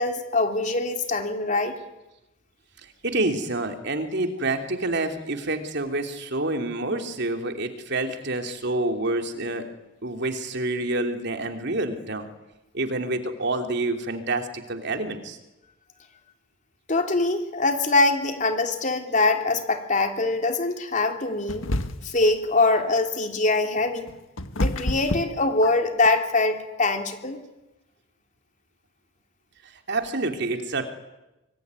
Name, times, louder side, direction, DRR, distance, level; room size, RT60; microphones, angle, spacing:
voice 1, 0.0-1.7 16.9-21.7 22.0-24.1 24.5-27.4, left 2 dB, 40° left, 5 dB, 3.4 m, -23 dB
voice 2, 2.8-9.7 10.0-12.3 12.7-15.4 29.6-30.9, right 2 dB, 55° right, 5 dB, 3.1 m, -28 dB
sound 1, 21.5-22.3 23.8-26.1, left 1 dB, 75° left, 1.6 m, -28 dB
25.0 x 24.5 x 9.7 m, 0.99 s
head